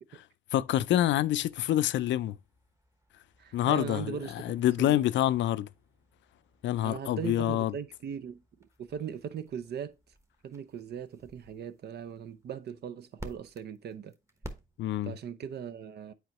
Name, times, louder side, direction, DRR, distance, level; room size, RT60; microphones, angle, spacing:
voice 1, 0.5-2.4 3.5-5.7 6.6-7.7 14.8-15.1, left 13 dB, 70° left, 0.4 m, -27 dB
sound 1, 0.8-15.2, right 1 dB, 15° right, 1.1 m, -54 dB
voice 2, 3.4-5.1 6.8-9.9 10.4-14.1 15.0-16.1, right 8 dB, 55° right, 0.6 m, -39 dB
8.2 x 4.6 x 2.9 m
cardioid pair, 90°, 20 cm